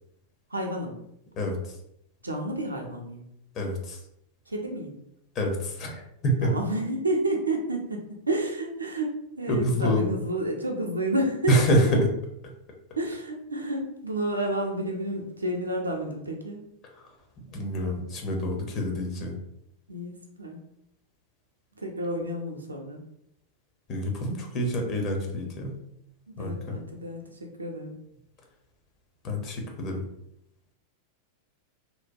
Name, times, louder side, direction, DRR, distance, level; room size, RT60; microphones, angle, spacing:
voice 1, 0.5-1.0 2.2-3.2 4.5-4.9 6.4-12.0 13.0-16.6 19.9-20.7 21.8-23.0 25.3-25.4 26.4-28.0, right 1 dB, 80° right, 1 dB, 0.5 m, -30 dB
voice 2, 1.4-1.8 3.5-4.0 5.3-6.5 9.5-10.1 11.5-12.1 17.5-19.4 23.9-25.8 26.4-26.8 29.2-30.0, equal, 35° left, 1 dB, 0.7 m, -27 dB
2.9 x 2.1 x 2.6 m, 0.79 s
figure-of-eight pair, 90°, 0 cm